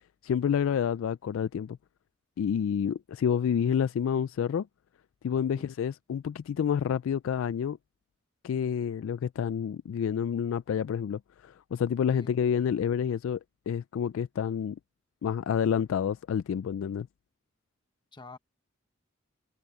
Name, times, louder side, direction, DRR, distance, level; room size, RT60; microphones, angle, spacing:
voice 1, 0.2-1.8 2.4-4.7 5.2-7.8 8.4-13.4 13.7-14.8 15.2-17.1, left 8 dB, 80° left, 0.3 m, -29 dB
voice 2, 5.5-5.7 12.1-12.4 18.1-18.4, left 2 dB, 25° left, 1.1 m, -47 dB
head